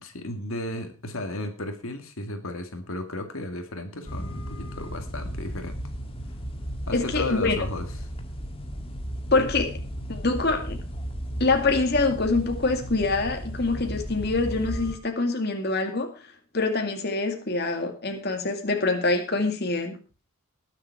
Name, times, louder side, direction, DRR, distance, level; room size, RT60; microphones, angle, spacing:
voice 1, 0.0-5.9 6.9-8.1, left 2 dB, 75° left, 6 dB, 2.1 m, -34 dB
sound 1, 4.0-15.0, equal, 25° left, 1.8 m, -35 dB
voice 2, 6.9-7.6 9.3-9.8 10.1-10.8 11.4-16.1 16.5-20.0, left 3 dB, 50° left, 4 dB, 2.1 m, -25 dB
20.0 x 7.4 x 4.7 m, 0.34 s
head